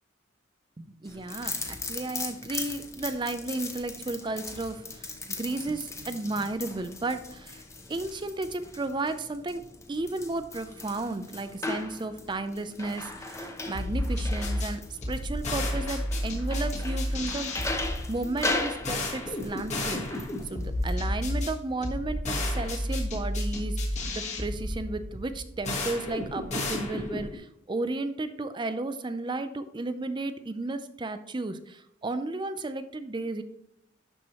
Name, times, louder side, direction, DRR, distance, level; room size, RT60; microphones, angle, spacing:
voice 1, 0.8-7.6 7.9-9.6 9.9-17.5 18.1-33.4, right 2 dB, 25° right, 10 dB, 0.4 m, -33 dB
sound 1, 1.0-20.9, left 3 dB, 15° left, 0.8 m, -38 dB
sound 2, 13.7-27.4, left 1 dB, 35° left, 1.5 m, -31 dB
11.5 x 4.5 x 3.0 m, 0.78 s
head